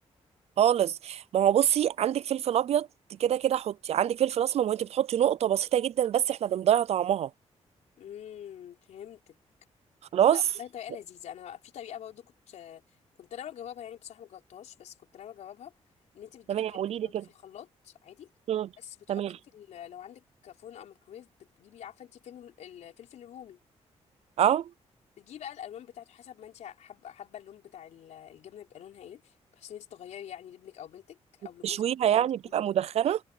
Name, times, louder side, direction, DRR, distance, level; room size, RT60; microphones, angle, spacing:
voice 1, 0.6-2.9 3.2-7.3 10.1-10.4 16.5-17.2 18.5-18.7 19.1-19.3 24.4-24.7 31.6-33.2, right 10 dB, 65° right, 0.5 m, -25 dB
voice 2, 8.0-9.3 10.3-12.8 13.2-15.7 16.1-18.3 18.8-21.3 21.6-23.6 25.2-31.9 32.1-32.6, left 10 dB, 85° left, 4.7 m, -46 dB
cardioid pair, 120°, 12 cm